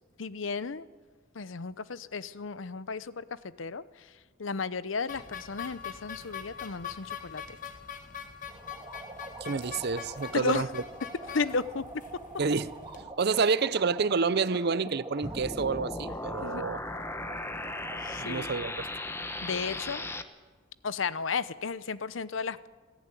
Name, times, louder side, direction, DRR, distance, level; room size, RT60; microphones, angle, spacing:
voice 1, 0.2-0.8 1.3-4.1 4.4-7.6 10.3-10.7 11.3-11.9 16.4-16.6 18.0-18.5 19.4-20.0 20.8-22.7, left 4 dB, 80° left, 0.7 m, -34 dB
sound 1, 5.1-13.0, left 8 dB, 45° left, 1.5 m, -43 dB
sound 2, 8.5-18.5, right 3 dB, 20° right, 2.0 m, -46 dB
voice 2, 9.4-10.8 12.4-12.7 13.2-16.8 18.2-18.9, right 5 dB, 55° right, 0.6 m, -28 dB
sound 3, 15.2-20.2, left 2 dB, 15° left, 1.0 m, -37 dB
21.5 x 14.5 x 9.8 m
head